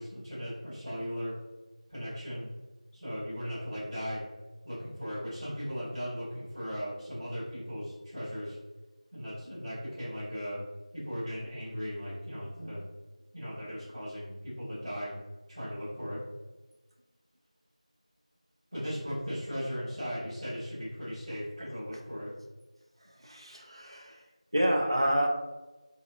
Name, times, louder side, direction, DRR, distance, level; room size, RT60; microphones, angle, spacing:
voice 1, 0.0-1.3 1.9-2.5 2.9-4.2 4.6-8.5 9.1-10.6 10.9-12.8 13.3-15.2 15.5-16.2 18.7-22.3, equal, 15° right, -19 dB, 1.0 m, -37 dB
voice 2, 21.6-22.0 23.0-24.3 24.5-25.3, equal, 40° right, 1 dB, 0.5 m, -29 dB
4.0 x 2.4 x 2.5 m, 1.1 s
figure-of-eight pair, 175°, 4 cm